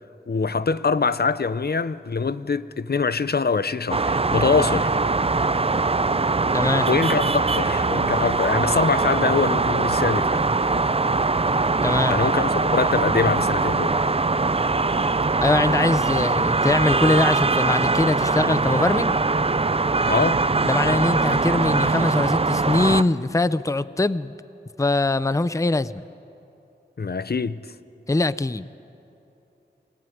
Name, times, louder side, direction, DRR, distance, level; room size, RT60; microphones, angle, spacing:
voice 1, 0.3-4.9 6.9-10.5 12.1-13.9 20.1-20.4 27.0-27.6, left 4 dB, 60° left, 0.7 m, -24 dB
sound 1, 3.9-23.0, right 3 dB, 30° right, 0.5 m, -22 dB
voice 2, 6.5-6.9 11.8-12.1 15.4-19.2 20.6-24.3 24.8-26.0 28.1-28.7, left 2 dB, 15° left, 0.5 m, -22 dB
28.0 x 21.0 x 9.3 m
wide cardioid pair, 65°, 18 cm